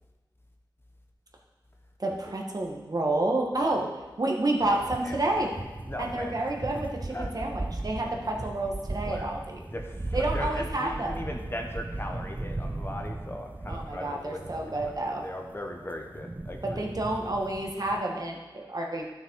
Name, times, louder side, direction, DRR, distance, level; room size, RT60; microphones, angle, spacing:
voice 1, 2.0-3.9 4.2-5.5 6.0-9.6 10.1-11.1 13.7-15.2 16.6-19.1, right 2 dB, 50° right, 0 dB, 1.5 m, -29 dB
sound 1, 4.6-18.0, right 2 dB, 20° right, 0.3 m, -37 dB
voice 2, 5.0-5.5 5.9-6.5 7.1-7.3 9.0-9.4 9.7-16.9, left 1 dB, 30° left, 2 dB, 1.1 m, -38 dB
12.5 x 6.2 x 4.7 m, 1.2 s
wide cardioid pair, 75°, 8 cm